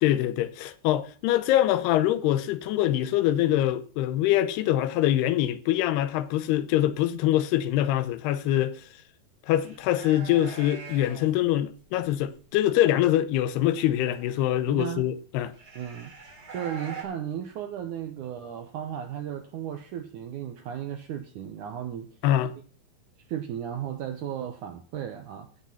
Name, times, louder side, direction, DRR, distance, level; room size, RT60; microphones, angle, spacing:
voice 1, 0.0-8.8 9.5-15.5 22.2-22.5, left 13 dB, 80° left, 2.9 m, -24 dB
sound 1, 9.6-11.3 11.8-12.3 13.5-14.6 15.4-17.0, right 4 dB, 25° right, 2.7 m, -43 dB
voice 2, 14.7-15.1 15.8-16.1 16.5-22.1 23.3-25.5, right 9 dB, 80° right, 1.8 m, -35 dB
16.0 x 5.9 x 5.9 m
omnidirectional pair, 4.8 m